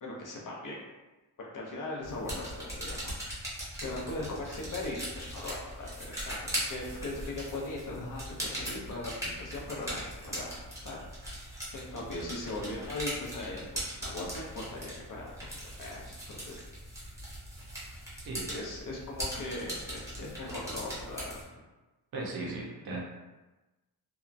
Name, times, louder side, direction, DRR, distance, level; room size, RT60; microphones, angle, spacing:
voice 1, 0.0-0.8 1.4-3.4 3.8-11.0 11.5-13.7 13.9-15.3 15.7-16.6 18.5-21.4, left 2 dB, 50° left, -3 dB, 0.6 m, -39 dB
Xbox Controller, 2.0-21.4, equal, 5° right, 0.8 m, -40 dB
voice 2, 22.1-23.0, right 2 dB, 65° right, -2 dB, 0.7 m, -37 dB
2.8 x 2.3 x 2.4 m, 1.1 s
wide cardioid pair, 155°, 41 cm